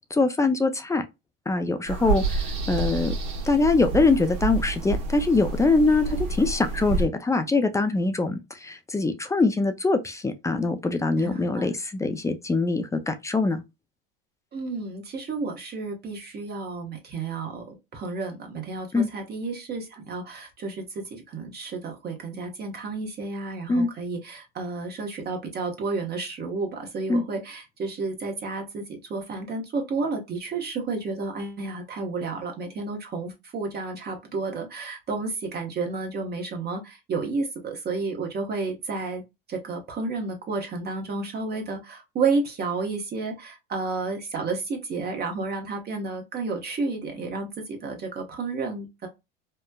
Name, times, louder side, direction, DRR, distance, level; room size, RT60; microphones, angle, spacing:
voice 1, 0.1-1.0 1.5-2.4 2.7-3.1 3.4-13.6 18.9-19.1 23.7-23.9 27.1-27.2, left 3 dB, 10° left, 0.3 m, -23 dB
sound 1, 1.9-7.1, right 4 dB, 60° right, 1.0 m, -29 dB
voice 2, 11.2-11.7 14.5-39.2 39.5-49.1, right 3 dB, 35° right, 0.9 m, -31 dB
3.2 x 2.1 x 2.2 m
hypercardioid pair, 90°, 29 cm